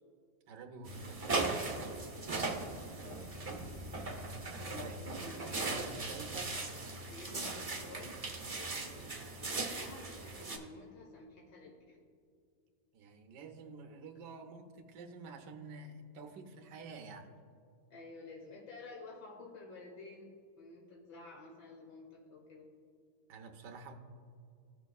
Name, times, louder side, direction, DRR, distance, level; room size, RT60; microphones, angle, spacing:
voice 1, 0.5-1.7 4.7-5.1 5.5-6.5 12.9-17.4 23.3-23.9, right 4 dB, 85° right, 4 dB, 1.4 m, -49 dB
sound 1, 0.8-10.6, right 3 dB, 35° right, 0.6 m, -39 dB
voice 2, 3.0-3.6 4.6-6.4 7.1-8.2 8.5-12.0 17.9-20.3 20.6-22.6, left 3 dB, 85° left, -2 dB, 1.7 m, -52 dB
15.5 x 6.2 x 2.3 m, 2.3 s
omnidirectional pair, 1.8 m